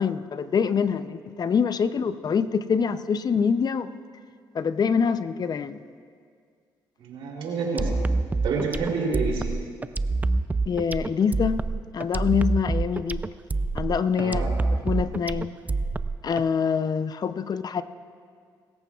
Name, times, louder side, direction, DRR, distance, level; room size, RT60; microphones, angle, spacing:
voice 1, 0.0-3.9 4.5-5.8 10.7-11.7 11.9-13.3 13.7-14.5 14.7-15.6 16.2-17.8, left 6 dB, 45° left, 12 dB, 0.6 m, -25 dB
voice 2, 7.0-7.9 8.4-9.5 14.2-14.5, right 4 dB, 75° right, -1 dB, 3.2 m, -28 dB
sound 1, 7.8-16.4, right 3 dB, 15° right, 0.4 m, -26 dB
23.5 x 14.0 x 2.4 m, 2.1 s
supercardioid pair, 65°, 9 cm